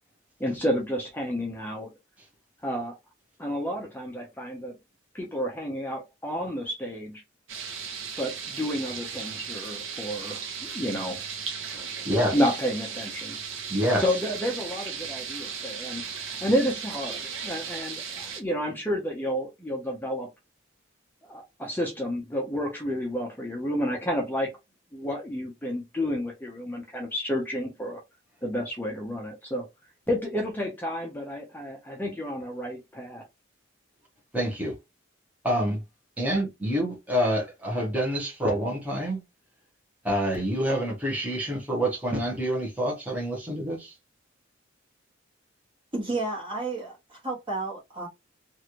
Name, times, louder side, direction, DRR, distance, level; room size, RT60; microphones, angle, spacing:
voice 1, 0.4-1.9 2.6-3.0 3.4-4.7 5.1-7.2 8.2-11.2 12.3-13.4 14.0-20.3 21.3-24.5 24.9-28.0 28.4-29.7 30.1-33.2, equal, 10° left, 0.6 m, -30 dB
sound 1, 7.5-18.4, right 6 dB, 70° right, 0.8 m, -36 dB
voice 2, 11.7-12.5 13.7-14.0 34.3-34.7 35.4-35.8 36.2-39.2 40.0-43.9, equal, 10° right, 1.0 m, -27 dB
voice 3, 45.9-48.1, right 2 dB, 25° right, 1.5 m, -32 dB
3.1 x 2.5 x 2.9 m
head